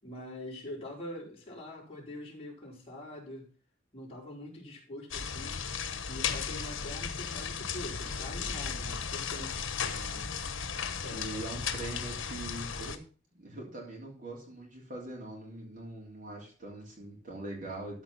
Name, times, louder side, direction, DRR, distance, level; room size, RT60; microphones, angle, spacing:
voice 1, 0.0-3.5 3.9-5.6 6.1-9.7 11.0-11.5, left 1 dB, 30° left, 4.5 m, -44 dB
sound 1, 5.1-13.0, left 6 dB, 80° left, 1.2 m, -35 dB
voice 2, 9.9-10.3 11.1-13.0 13.4-18.0, right 2 dB, 40° right, 3.2 m, -42 dB
13.5 x 5.0 x 5.8 m
head